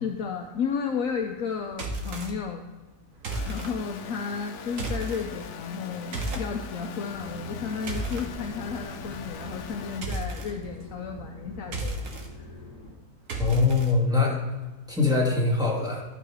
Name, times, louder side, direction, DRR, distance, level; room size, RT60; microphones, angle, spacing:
voice 1, 0.0-2.7 3.5-12.5, left 6 dB, 65° left, 3 dB, 1.1 m, -33 dB
sound 1, 1.7-2.3 3.2-3.7 4.7-5.2 6.1-6.5 7.5-8.3 10.0-10.5 11.6-12.3 13.3-13.9, right 2 dB, 60° right, 1.5 m, -32 dB
sound 2, 3.3-10.0, left 8 dB, 85° left, 1.2 m, -42 dB
sound 3, 7.1-12.9, equal, 40° right, 3.5 m, -43 dB
voice 2, 13.4-14.4 14.9-16.0, left 3 dB, 5° right, -4 dB, 2.1 m, -23 dB
12.0 x 4.9 x 5.0 m, 1.2 s
omnidirectional pair, 1.6 m